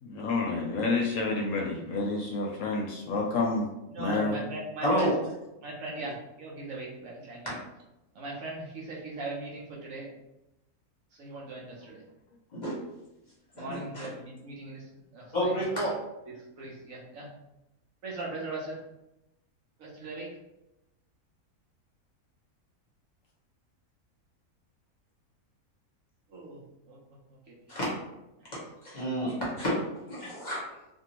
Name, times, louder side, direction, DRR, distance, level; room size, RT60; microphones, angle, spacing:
voice 1, 0.0-3.7 4.0-4.4, left 3 dB, 70° left, -1 dB, 0.9 m, -29 dB
voice 2, 3.9-5.1 5.6-7.5 8.1-10.1 11.1-12.0 13.5-15.7 16.3-17.3 18.0-18.8 19.8-20.3 26.3-27.2 27.5-27.6 28.4-28.5, right 2 dB, 70° right, -4 dB, 1.1 m, -39 dB
voice 3, 4.8-5.2 12.6-12.8 13.6-14.1 15.3-15.9 27.7-27.9 28.8-29.7 30.1-30.6, equal, 35° left, -6 dB, 0.9 m, -29 dB
2.7 x 2.6 x 2.9 m, 0.91 s
omnidirectional pair, 1.6 m